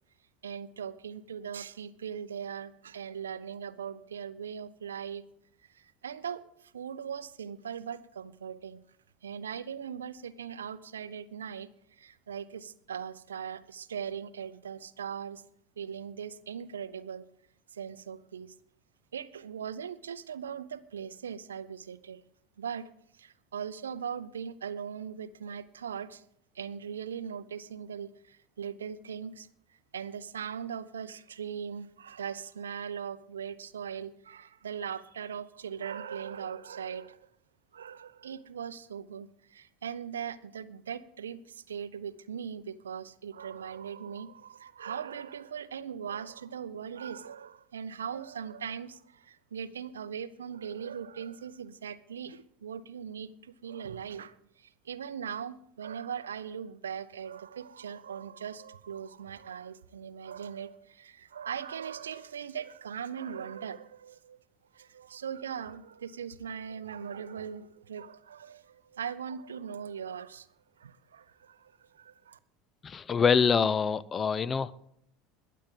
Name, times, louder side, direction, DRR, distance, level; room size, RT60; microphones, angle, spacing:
voice 1, 0.4-5.2 5.7-8.8 9.2-15.4 15.8-17.3 17.7-18.5 19.1-22.2 22.6-22.9 23.1-26.2 26.5-29.5 29.9-37.3 37.7-64.4 64.7-70.5 70.8-72.4, right 7 dB, 75° right, 16 dB, 0.5 m, -40 dB
voice 2, 72.8-74.7, left 6 dB, 25° left, 20 dB, 0.5 m, -25 dB
21.5 x 8.5 x 3.7 m, 0.69 s
figure-of-eight pair, 70°, 0 cm